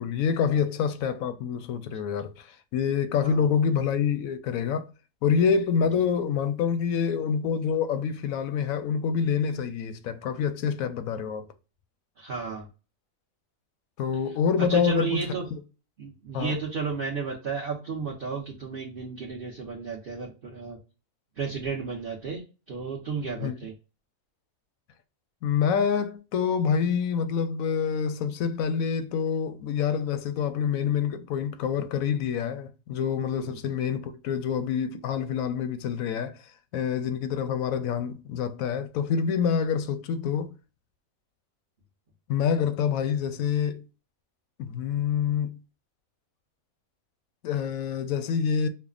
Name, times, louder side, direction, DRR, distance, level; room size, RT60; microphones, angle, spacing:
voice 1, 0.0-4.9 5.2-11.5 14.0-15.6 16.3-16.6 23.4-23.6 25.4-36.4 36.7-40.5 42.3-43.8 44.6-45.6 47.4-48.7, left 7 dB, 90° left, 1.0 m, -27 dB
voice 2, 12.2-12.7 14.7-15.4 16.0-20.8 21.4-22.4 22.7-23.7 33.3-33.6, right 5 dB, 45° right, 0.9 m, -33 dB
5.6 x 2.1 x 2.3 m
omnidirectional pair, 1.4 m